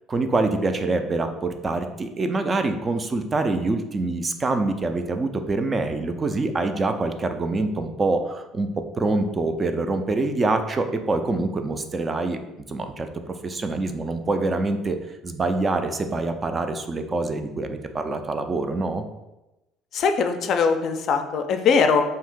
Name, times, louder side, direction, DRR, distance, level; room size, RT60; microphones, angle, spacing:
voice 1, 0.1-8.7 9.0-12.4 12.7-15.0 15.2-19.0, right 3 dB, 30° right, 7 dB, 0.3 m, -25 dB
voice 2, 19.9-22.0, left 5 dB, 60° left, 6 dB, 0.4 m, -21 dB
2.7 x 2.5 x 3.6 m, 0.99 s
supercardioid pair, 90°, 0 cm